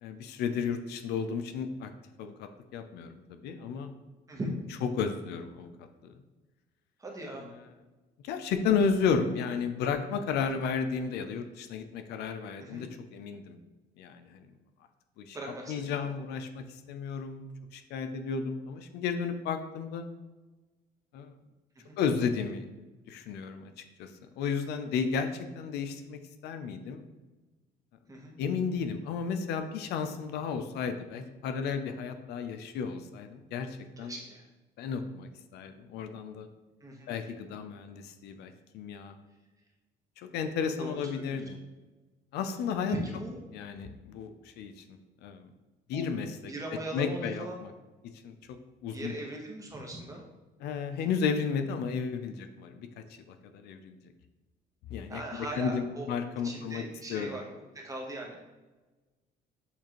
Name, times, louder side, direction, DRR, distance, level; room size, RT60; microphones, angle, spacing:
voice 1, 0.0-1.9 2.2-3.9 4.9-5.7 6.0-6.1 7.6-7.7 8.2-13.6 14.0-14.4 15.2-15.4 15.7-20.0 21.1-21.3 22.0-22.6 23.1-23.7 24.0-24.1 24.4-27.0 28.4-34.1 34.8-36.5 37.1-39.1 40.2-41.6 42.3-43.0 43.5-44.8 45.2-45.5 45.9-46.3 46.9-47.7 48.2-48.6 48.8-49.1 50.6-52.9 53.3-54.0 54.9-56.8 57.1-57.4, left 6 dB, 75° left, 8 dB, 0.5 m, -33 dB
voice 2, 7.0-7.5 12.6-12.9 15.3-16.1 21.8-22.0 28.1-28.4 34.0-34.4 36.8-37.1 40.8-41.4 42.9-43.4 45.9-46.0 46.5-47.6 48.9-50.2 55.1-56.1 56.4-57.5 57.7-58.4, right 1 dB, 20° right, 0 dB, 0.9 m, -39 dB
6.9 x 2.5 x 3.0 m, 1.2 s
cardioid pair, 110°, 17 cm